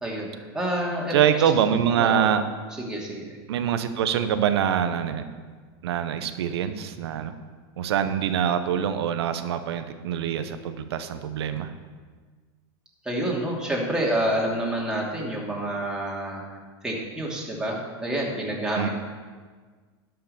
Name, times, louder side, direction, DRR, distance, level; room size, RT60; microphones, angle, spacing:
voice 1, 0.0-1.4 2.0-2.3 2.8-3.2 13.0-16.4 16.8-18.9, right 1 dB, 5° right, -4 dB, 2.7 m, -28 dB
voice 2, 1.1-2.4 3.5-5.2 5.8-7.3 7.8-11.7 18.8-18.9, right 9 dB, 85° right, 10 dB, 0.9 m, -24 dB
12.0 x 5.8 x 6.8 m, 1.5 s
supercardioid pair, 115°, 13 cm